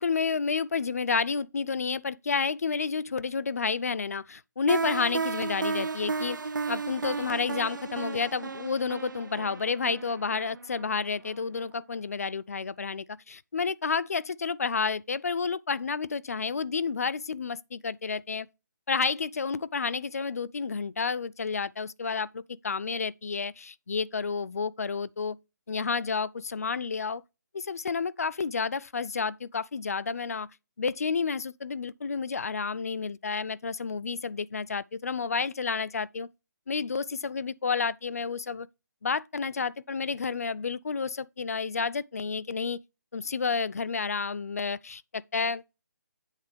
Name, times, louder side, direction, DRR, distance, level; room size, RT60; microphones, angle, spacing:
voice 1, 0.0-6.4 6.7-18.5 18.9-25.4 25.7-27.2 27.5-30.5 30.8-36.3 36.7-38.7 39.0-42.8 43.1-45.6, left 5 dB, 55° left, 0.4 m, -30 dB
sound 1, 4.7-11.4, right 4 dB, 90° right, 0.7 m, -34 dB
8.2 x 3.6 x 5.0 m
hypercardioid pair, 175°, 10 cm